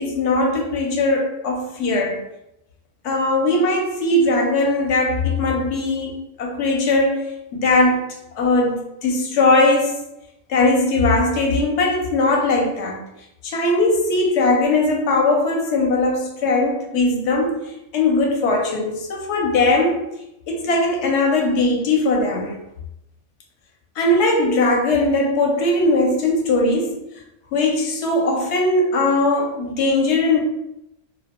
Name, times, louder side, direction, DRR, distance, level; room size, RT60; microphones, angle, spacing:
voice 1, 0.0-2.2 3.0-7.3 7.5-8.1 8.4-10.0 10.5-13.0 13.4-17.6 17.9-20.0 20.5-22.6 24.0-27.0 27.5-30.4, left 2 dB, 70° left, 0.8 m, -19 dB
2.2 x 2.0 x 2.9 m
omnidirectional pair, 1.2 m